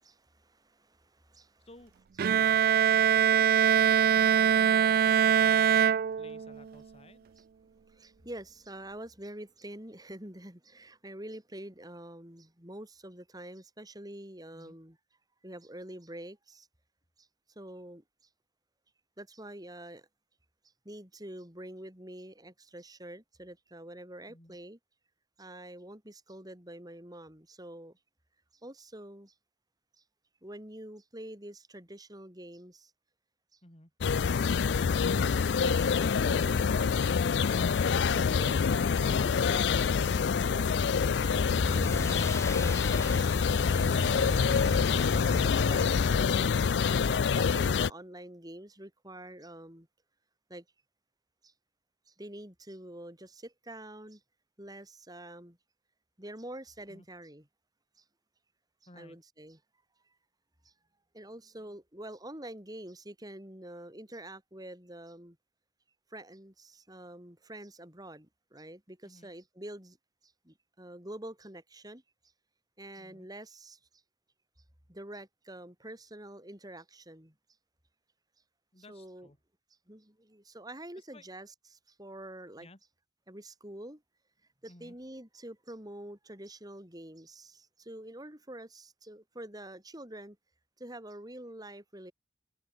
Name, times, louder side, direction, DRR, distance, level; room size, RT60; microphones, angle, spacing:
voice 1, 0.0-1.7 7.4-7.5 7.9-15.0 15.4-16.7 17.2-18.0 19.2-20.1 20.8-24.8 25.4-28.0 28.6-29.3 30.0-30.1 30.4-32.9 33.5-33.6 34.7-37.0 37.4-41.9 43.7-46.6 46.9-49.9 50.5-50.6 51.4-51.5 52.1-54.2 54.6-55.6 56.2-57.5 57.9-58.0 58.9-59.6 60.6-60.7 61.1-65.4 66.1-70.0 70.2-72.0 72.8-73.8 74.9-77.3 78.8-79.3 79.9-82.7 83.3-84.0 84.6-90.4 90.8-92.1, right 1 dB, 20° right, 6.2 m, -46 dB
voice 2, 1.6-1.9 2.4-2.8 3.1-3.5 3.8-7.3 14.5-14.7 24.3-24.6 33.6-33.9 56.9-57.0 58.9-59.2 69.0-69.3 73.0-73.3 78.7-79.4 80.9-81.2 82.6-82.8 84.7-85.0, left 2 dB, 35° left, 4.7 m, -54 dB
Bowed string instrument, 2.2-6.6, right 8 dB, 55° right, 0.3 m, -23 dB
sound 1, 34.0-47.9, left 6 dB, 70° left, 0.4 m, -26 dB
sound 2, 41.2-46.5, left 1 dB, 15° left, 1.2 m, -37 dB
head